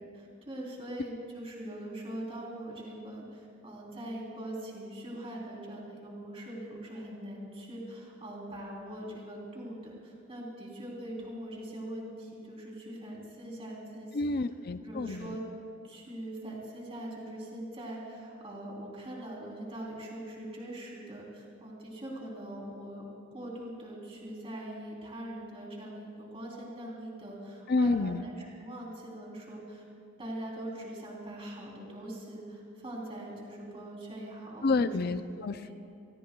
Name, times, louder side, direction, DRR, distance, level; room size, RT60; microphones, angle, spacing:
voice 1, 0.0-14.2 14.8-15.4 15.8-23.0 23.3-29.8 30.2-34.9 35.4-35.7, right 1 dB, 25° right, -3 dB, 3.5 m, -42 dB
voice 2, 14.1-15.4 27.7-28.3 34.6-35.7, left 3 dB, 45° left, 11 dB, 0.5 m, -29 dB
29.5 x 18.5 x 2.3 m, 2.4 s
head